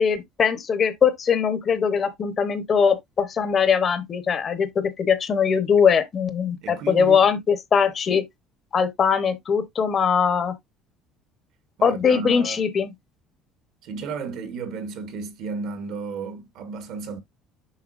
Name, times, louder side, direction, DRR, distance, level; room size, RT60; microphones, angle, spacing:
voice 1, 0.0-8.2 8.7-10.5 11.8-12.9, left 6 dB, 30° left, 0.9 m, -21 dB
voice 2, 6.6-7.3 11.8-12.7 13.8-17.2, right 5 dB, 55° right, 1.3 m, -33 dB
7.2 x 5.6 x 2.4 m
cardioid pair, 165°, 0 cm